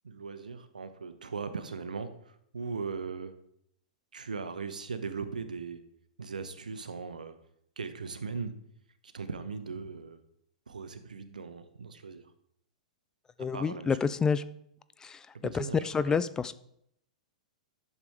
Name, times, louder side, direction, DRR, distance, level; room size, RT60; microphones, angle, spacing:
voice 1, 0.0-3.3 4.1-5.8 6.2-7.3 7.8-8.5 9.0-10.2 10.7-12.3 13.4-14.0 15.4-15.9, right 5 dB, 90° right, 10 dB, 0.9 m, -39 dB
voice 2, 13.4-14.4 15.0-15.3 15.5-16.5, left 5 dB, 15° left, 15 dB, 0.4 m, -28 dB
11.0 x 6.7 x 3.6 m, 0.73 s
hypercardioid pair, 115°, 4 cm